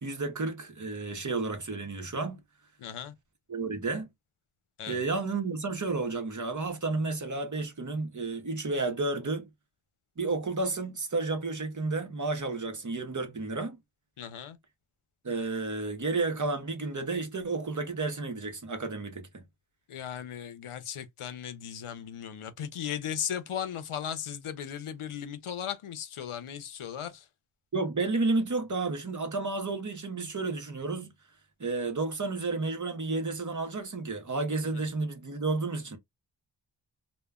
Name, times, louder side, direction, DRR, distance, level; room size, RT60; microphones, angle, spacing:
voice 1, 0.0-2.4 3.5-4.1 4.9-9.5 10.2-13.8 15.2-19.4 27.7-31.1 31.6-36.0, right 3 dB, 40° right, 0.7 m, -31 dB
voice 2, 2.8-3.1 4.8-5.0 14.2-14.6 19.9-27.3 34.7-34.8, left 9 dB, 90° left, 0.6 m, -37 dB
2.1 x 2.1 x 3.4 m
wide cardioid pair, 75°, 49 cm